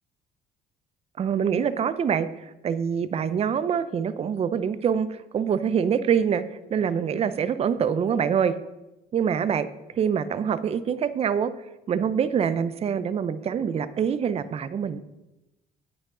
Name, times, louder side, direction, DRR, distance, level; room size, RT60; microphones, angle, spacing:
voice 1, 1.2-6.4 6.7-8.5 9.1-9.7 10.0-11.5 11.9-15.0, right 7 dB, 35° right, 13 dB, 0.5 m, -25 dB
9.7 x 8.1 x 3.8 m, 0.98 s
cardioid pair, 110°, 17 cm